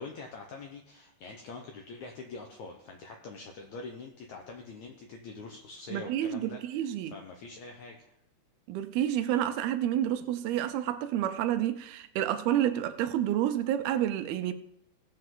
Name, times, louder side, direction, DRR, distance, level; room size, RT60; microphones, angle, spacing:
voice 1, 0.0-8.2, left 3 dB, 75° left, 1.7 m, -44 dB
voice 2, 5.9-7.1 8.7-14.5, right 11 dB, 80° right, 2.5 m, -29 dB
18.0 x 8.0 x 3.8 m
omnidirectional pair, 4.6 m